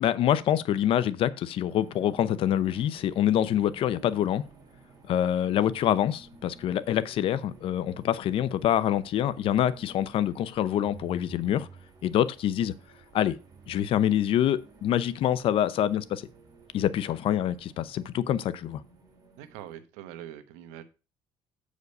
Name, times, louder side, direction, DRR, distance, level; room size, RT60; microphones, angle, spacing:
voice 1, 0.0-4.4 5.0-11.7 12.0-12.7 13.1-13.4 13.7-16.2 16.7-18.8, left 11 dB, 55° left, 0.7 m, -26 dB
sound 1, 1.6-19.8, right 3 dB, 35° right, 2.9 m, -52 dB
voice 2, 19.4-20.8, right 11 dB, 90° right, 1.0 m, -43 dB
8.0 x 5.1 x 5.3 m
cardioid pair, 120°, 11 cm